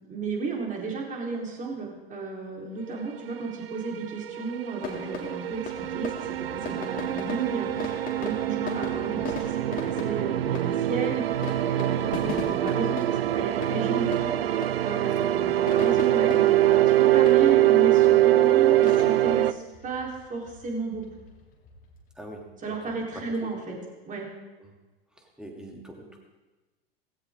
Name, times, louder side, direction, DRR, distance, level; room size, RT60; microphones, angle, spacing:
voice 1, 0.1-14.5 14.8-21.0 22.6-23.6 24.1-24.3, right 4 dB, 25° right, -1 dB, 3.9 m, -33 dB
sound 1, 3.4-19.5, right 14 dB, 70° right, 0.5 m, -23 dB
sound 2, 4.8-22.4, left 5 dB, 25° left, 2.9 m, -41 dB
voice 2, 22.1-22.9 23.4-23.8 24.6-24.7 25.1-26.2, right 1 dB, ahead, 0 dB, 2.8 m, -44 dB
18.0 x 16.5 x 3.7 m, 1.2 s
figure-of-eight pair, 90°, 31 cm